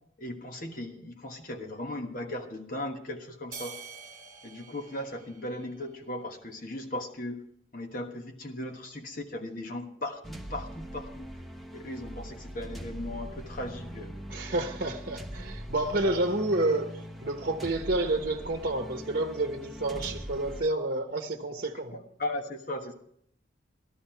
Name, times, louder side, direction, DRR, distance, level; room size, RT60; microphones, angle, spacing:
voice 1, 0.2-3.8 4.4-7.4 7.7-11.3 11.7-14.2 21.9-22.9, left 1 dB, 45° left, 1.4 m, -37 dB
sound 1, 3.5-6.1, right 5 dB, 20° right, 2.3 m, -46 dB
sound 2, 10.2-20.6, equal, ahead, 0.9 m, -42 dB
voice 2, 14.3-22.0, right 2 dB, 50° right, 1.1 m, -29 dB
13.5 x 12.5 x 4.5 m
head